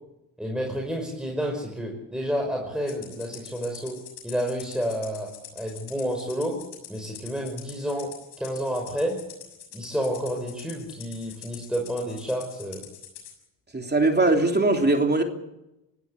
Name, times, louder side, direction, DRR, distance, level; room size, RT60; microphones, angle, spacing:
voice 1, 0.4-6.6 6.9-9.3 9.7-12.8, equal, ahead, 0 dB, 5.8 m, -30 dB
Rattle (instrument), 2.9-13.3, left 10 dB, 80° left, 6.7 m, -45 dB
voice 2, 13.7-15.2, right 2 dB, 25° right, 4 dB, 3.3 m, -21 dB
24.5 x 16.5 x 8.4 m, 0.92 s
supercardioid pair, 70°, 43 cm